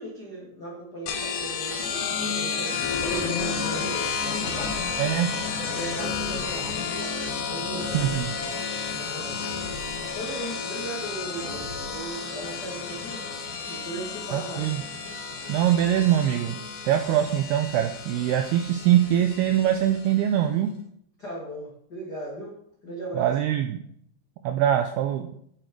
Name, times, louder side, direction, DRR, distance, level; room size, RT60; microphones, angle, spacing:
voice 1, 0.0-4.8 5.7-6.9 7.4-8.3 8.9-9.7 10.1-13.2 13.7-14.7 21.2-22.5 22.8-23.4, right 2 dB, 40° left, -4 dB, 1.5 m, -37 dB
sound 1, 1.1-20.2, left 5 dB, 70° left, 2.0 m, -31 dB
sound 2, 2.7-3.4 4.4-5.0 6.0-6.7 7.7-8.4 9.4-10.1 11.4-12.1, left 1 dB, 20° right, 2.2 m, -42 dB
voice 2, 5.0-5.3 7.9-8.3 14.3-14.8 15.5-20.7 23.2-23.8 24.4-25.3, right 11 dB, 85° right, 6 dB, 2.3 m, -23 dB
8.9 x 8.8 x 4.7 m, 0.69 s
omnidirectional pair, 5.3 m